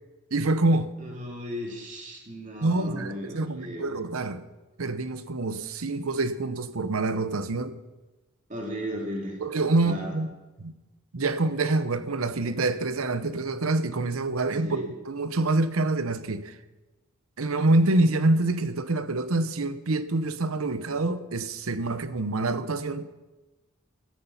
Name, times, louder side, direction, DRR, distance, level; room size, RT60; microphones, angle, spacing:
voice 1, 0.3-0.9 2.6-4.4 4.8-7.8 9.4-10.3 10.6-10.7 11.1-16.6 17.4-23.0, right 2 dB, 85° right, 0.9 m, -26 dB
voice 2, 1.0-4.0 8.5-9.4 9.8-10.2 14.6-14.9, equal, 35° right, 2.8 m, -36 dB
14.0 x 13.5 x 5.6 m
head